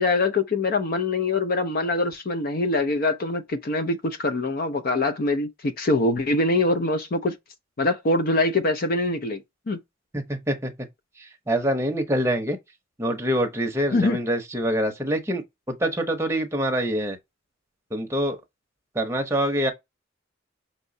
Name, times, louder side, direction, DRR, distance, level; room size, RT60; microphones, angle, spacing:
voice 1, 0.0-7.4 7.8-9.4 9.7-9.8 13.9-14.2, left 2 dB, 50° left, 0.5 m, -23 dB
voice 2, 10.1-10.7 11.2-12.6 13.0-17.2 17.9-18.4 18.9-19.7, equal, 15° right, 0.8 m, -25 dB
5.4 x 3.0 x 2.7 m
head